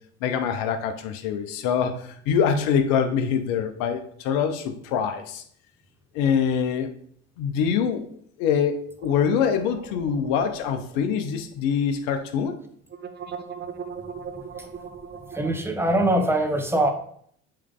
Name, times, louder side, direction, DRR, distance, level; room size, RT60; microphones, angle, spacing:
voice 1, 0.2-5.4 6.1-6.9 7.4-8.1 8.4-12.6, left 7 dB, 60° left, 9 dB, 1.0 m, -24 dB
sound 1, 9.0-11.5 11.8-11.9 12.9-15.6, right 6 dB, 25° right, 0.7 m, -39 dB
voice 2, 14.3-14.9 15.2-16.9, right 1 dB, 5° right, 5 dB, 1.0 m, -24 dB
8.4 x 3.4 x 3.6 m, 0.63 s
hypercardioid pair, 70°, 38 cm